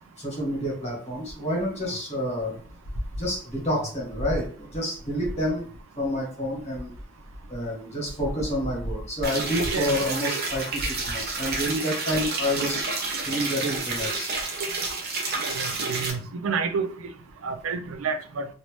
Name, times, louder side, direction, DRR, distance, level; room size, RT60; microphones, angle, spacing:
voice 1, 0.2-2.6 3.2-5.7 5.9-6.9 7.5-12.8 13.2-14.3, equal, 35° left, 1.6 m, -28 dB
sound 1, 9.2-16.1, right 3 dB, 50° right, 0.8 m, -29 dB
voice 2, 15.4-16.9 17.4-18.5, right 5 dB, 90° right, 0.4 m, -29 dB
3.0 x 2.7 x 3.1 m
head